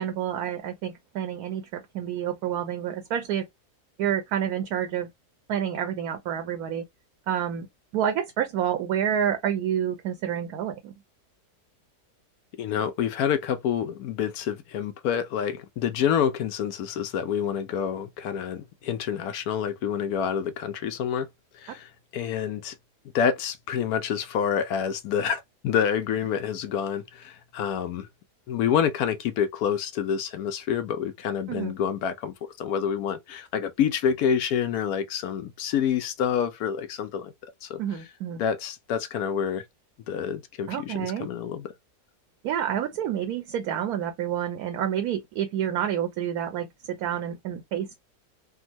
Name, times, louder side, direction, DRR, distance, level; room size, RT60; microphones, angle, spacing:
voice 1, 0.0-3.5 4.0-5.1 5.5-6.8 7.3-7.7 7.9-10.9 31.5-31.7 37.8-38.4 40.7-41.3 42.4-48.0, right 9 dB, 75° right, 1.1 m, -28 dB
voice 2, 12.6-21.3 21.5-22.7 23.1-28.1 28.5-37.3 37.6-37.8 38.4-39.6 40.1-41.7, left 8 dB, 75° left, 1.0 m, -27 dB
3.5 x 2.1 x 2.9 m
omnidirectional pair, 1.7 m